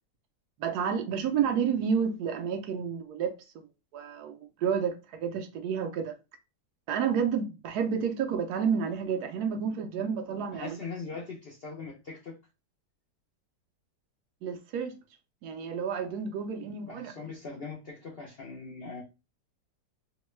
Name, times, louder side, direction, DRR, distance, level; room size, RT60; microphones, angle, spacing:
voice 1, 0.6-3.6 3.9-6.1 6.9-10.8 14.4-15.0 15.4-17.3, right 7 dB, 75° right, 1.0 m, -30 dB
voice 2, 10.5-12.3 16.6-19.0, left 4 dB, 70° left, 0.5 m, -41 dB
3.0 x 2.1 x 3.0 m
omnidirectional pair, 1.8 m